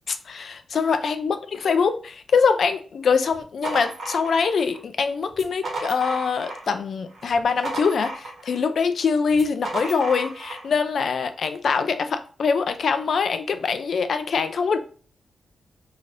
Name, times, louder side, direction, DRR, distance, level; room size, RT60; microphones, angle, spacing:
voice 1, 0.1-14.8, left 5 dB, 65° left, 0.3 m, -23 dB
sound 1, 3.3-4.8 5.3-6.8 7.1-8.6 9.3-10.7, right 2 dB, 60° right, 1.1 m, -33 dB
3.2 x 2.8 x 2.5 m
cardioid pair, 95°, 0 cm